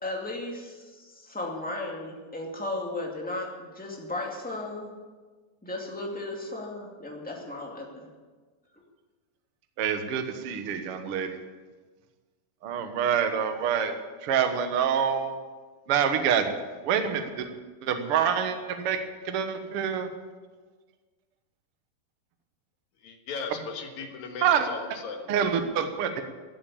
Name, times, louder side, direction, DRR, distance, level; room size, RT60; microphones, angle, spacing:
voice 1, 0.0-4.9 5.6-8.1, left 2 dB, 5° left, -1 dB, 1.1 m, -35 dB
voice 2, 9.8-11.4 12.6-13.9 14.2-15.3 15.9-16.5 16.8-17.5 17.8-19.0 19.2-20.1 24.4-24.7 25.3-26.2, right 8 dB, 90° right, 7 dB, 1.2 m, -26 dB
voice 3, 23.0-25.3, left 4 dB, 60° left, 4 dB, 2.4 m, -37 dB
14.5 x 8.9 x 8.5 m, 1.4 s
omnidirectional pair, 4.5 m